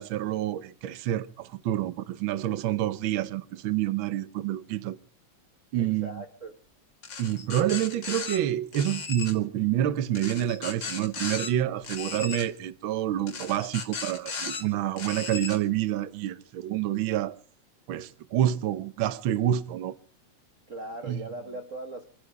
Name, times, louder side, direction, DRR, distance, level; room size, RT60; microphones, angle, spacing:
voice 1, 0.0-5.0 5.7-6.2 7.2-17.4 17.9-20.0 21.0-21.2, right 12 dB, 85° right, 1.1 m, -28 dB
voice 2, 5.8-6.6 20.7-22.1, right 2 dB, 50° right, 0.9 m, -39 dB
sound 1, 7.0-8.4 8.7-9.3 10.1-11.5 11.8-12.5 13.3-14.6 15.0-15.6, left 5 dB, 40° left, 2.4 m, -36 dB
27.0 x 10.5 x 4.8 m
omnidirectional pair, 3.4 m